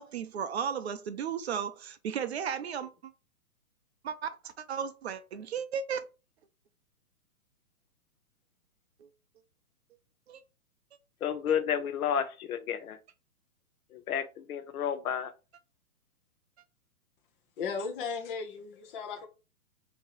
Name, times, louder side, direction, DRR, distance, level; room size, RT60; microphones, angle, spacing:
voice 1, 0.0-2.9 4.0-4.3 4.6-6.0 9.0-9.1 10.3-10.4, right 7 dB, 50° right, 0.5 m, -34 dB
voice 2, 11.2-13.0 14.1-15.3, left 8 dB, 70° left, 0.8 m, -31 dB
voice 3, 17.6-19.3, left 5 dB, 35° left, 0.8 m, -36 dB
4.4 x 2.8 x 3.0 m
hypercardioid pair, 145°, 44 cm